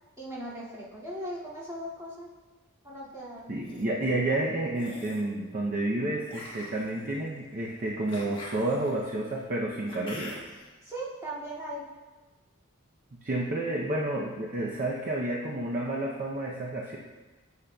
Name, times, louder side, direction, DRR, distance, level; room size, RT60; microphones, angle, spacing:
voice 1, 0.2-2.3 2.8-3.5 10.8-11.8, right 1 dB, 15° right, -9 dB, 2.1 m, -38 dB
sound 1, 3.4-3.8 4.7-5.3 6.3-10.7, left 1 dB, 25° left, 1.3 m, -45 dB
voice 2, 3.5-10.4 13.2-17.0, right 2 dB, 40° right, -2 dB, 0.6 m, -30 dB
10.0 x 7.3 x 2.2 m, 1.2 s
head